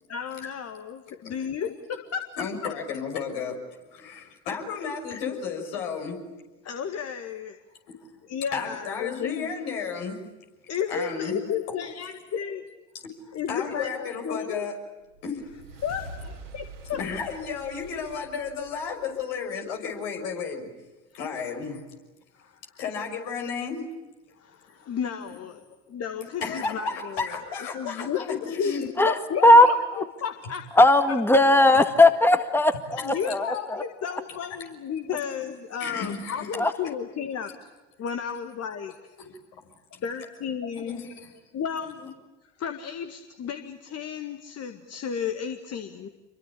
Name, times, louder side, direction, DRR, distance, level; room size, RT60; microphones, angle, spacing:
voice 1, 0.1-2.2 2.9-3.0 6.6-7.6 8.2-9.5 10.7-12.6 13.3-14.7 15.8-17.0 22.3-22.8 24.4-25.6 25.9-27.3 27.7-30.7 31.1-31.2 33.0-37.7 38.0-39.2 40.0-41.1 41.5-42.0 42.6-46.1, left 7 dB, 45° left, 7 dB, 1.9 m, -33 dB
voice 2, 2.4-3.6 3.9-6.2 7.9-8.0 8.5-10.2 10.9-11.4 11.6-11.8 13.0-13.1 13.5-14.7 15.2-15.4 16.9-20.7 21.1-21.8 22.8-23.9 26.4-28.9 35.1-35.2 35.8-36.5 36.8-36.9 39.2-39.6 40.9-41.3, left 5 dB, 70° left, 3 dB, 6.2 m, -33 dB
sound 1, 15.1-19.7, right 2 dB, 90° right, 3.4 m, -45 dB
voice 3, 29.0-29.7 29.9-30.0 30.8-33.8 36.6-36.7, left 1 dB, 5° left, 8 dB, 1.9 m, -18 dB
27.5 x 23.5 x 8.5 m, 1.1 s
hypercardioid pair, 65°, 36 cm